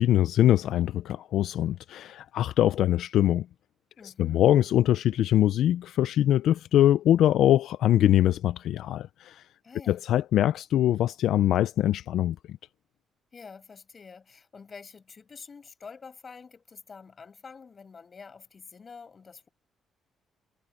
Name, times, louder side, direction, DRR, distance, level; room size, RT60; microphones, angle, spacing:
voice 1, 0.0-3.5 4.2-9.4 9.9-12.6, left 12 dB, 75° left, 0.5 m, -23 dB
voice 2, 4.0-4.4 9.6-10.0 13.3-19.5, left 5 dB, 40° left, 7.0 m, -47 dB
cardioid pair, 80°, 0 cm